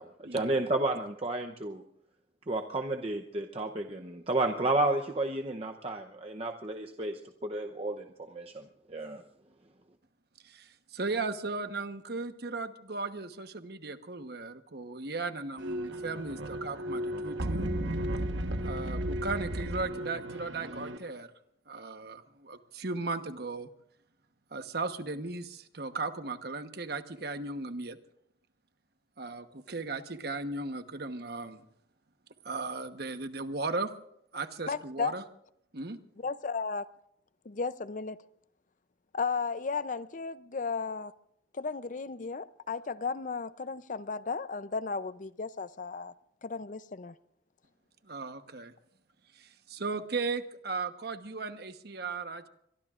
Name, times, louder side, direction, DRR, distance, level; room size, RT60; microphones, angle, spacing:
voice 1, 0.0-1.8 2.5-9.2, right 2 dB, 30° right, 0.7 m, -32 dB
voice 2, 10.4-17.7 18.6-21.3 21.7-23.7 24.5-28.0 29.2-31.7 32.4-33.9 34.3-35.2 35.7-36.0 48.0-48.7 49.3-52.5, right 3 dB, 55° right, 1.1 m, -36 dB
sound 1, 15.6-21.0, right 1 dB, 80° right, 1.3 m, -34 dB
voice 3, 34.7-35.2 36.2-36.9 37.4-38.2 39.1-41.1 41.5-46.1 46.4-47.1, left 4 dB, 45° left, 0.5 m, -34 dB
24.0 x 22.5 x 2.5 m
head